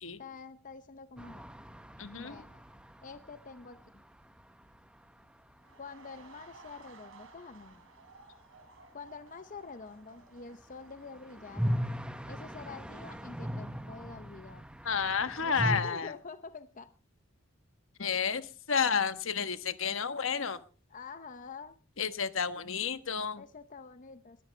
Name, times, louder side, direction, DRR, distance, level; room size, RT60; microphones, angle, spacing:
voice 1, 0.2-1.5 2.1-2.6 3.0-3.8 5.8-7.8 8.9-11.7 12.3-14.6 15.4-16.9 20.9-21.8 23.4-24.4, left 4 dB, 40° left, 11 dB, 0.7 m, -47 dB
sound 1, 1.2-5.0 5.2-5.3 5.5-5.6 10.6-15.8, equal, 5° right, 0.9 m, -38 dB
voice 2, 2.0-2.4 14.8-16.1 18.0-20.6 22.0-23.4, left 6 dB, 70° left, 11 dB, 1.2 m, -31 dB
sound 2, 5.6-14.4 14.8-15.0, right 3 dB, 75° right, 3.5 m, -58 dB
21.0 x 13.0 x 3.3 m, 0.38 s
head